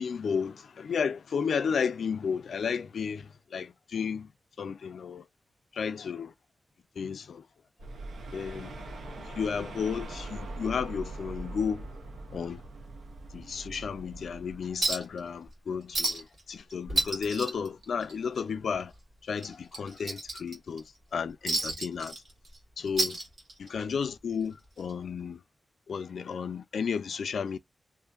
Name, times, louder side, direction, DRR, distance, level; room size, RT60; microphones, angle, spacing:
voice 1, 0.0-4.3 4.6-5.2 5.7-6.3 7.0-7.4 8.3-8.8 9.3-11.9 12.3-12.6 13.3-18.9 19.3-20.8 21.1-22.2 22.8-23.2 23.6-25.4 25.9-27.6, left 6 dB, 75° left, 0.3 m, -33 dB
sound 1, 7.8-14.9, right 2 dB, 80° right, 0.6 m, -42 dB
Chink clink, 14.8-15.2 15.5-15.6 15.9-16.4 16.7-18.4 18.7-18.9 19.4-20.8 21.5-22.6 22.9-23.8 24.9-25.0, right 1 dB, 50° right, 1.5 m, -31 dB
2.7 x 2.5 x 2.3 m
wide cardioid pair, 175°, 0 cm